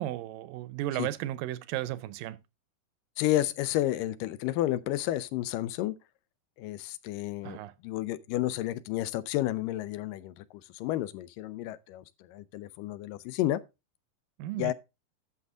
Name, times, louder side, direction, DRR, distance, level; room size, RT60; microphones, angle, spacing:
voice 1, 0.0-2.4 7.4-7.7 14.4-14.7, right 14 dB, 85° right, 2.4 m, -34 dB
voice 2, 3.2-6.0 6.6-7.6 7.8-10.4 10.8-12.0 12.3-13.6 14.6-14.7, left 14 dB, 80° left, 2.2 m, -31 dB
11.5 x 6.7 x 3.7 m
omnidirectional pair, 3.9 m